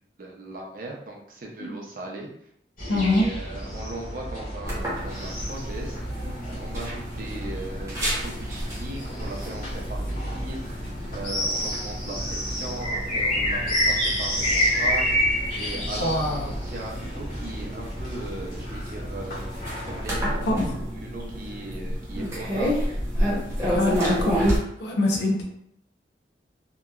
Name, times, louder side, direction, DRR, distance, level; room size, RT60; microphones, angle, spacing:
voice 1, 0.2-2.3 2.8-22.7 25.1-25.2, right 2 dB, 50° right, -1 dB, 0.5 m, -38 dB
sound 1, 2.8-20.2, equal, 50° left, 1.3 m, -30 dB
voice 2, 2.9-3.3 16.0-16.5 20.4-20.7 23.6-25.4, left 1 dB, 75° left, 0 dB, 0.6 m, -25 dB
sound 2, 4.7-24.6, equal, 15° right, 0.7 m, -31 dB
2.8 x 2.2 x 2.3 m, 0.74 s
head